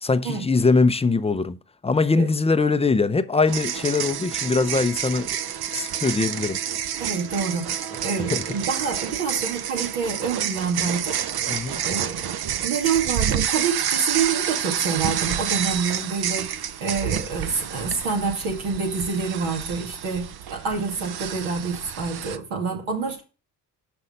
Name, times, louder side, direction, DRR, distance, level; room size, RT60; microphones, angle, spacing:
voice 1, 0.0-1.6 1.8-5.4 5.7-6.6 8.3-8.4 11.5-11.8, left 4 dB, 15° left, 0.5 m, -22 dB
sound 1, 3.5-22.4, right 9 dB, 50° right, 0.8 m, -29 dB
voice 2, 7.0-11.2 11.8-23.2, right 5 dB, 75° right, 2.4 m, -27 dB
6.3 x 5.7 x 5.3 m
hypercardioid pair, 60°, 49 cm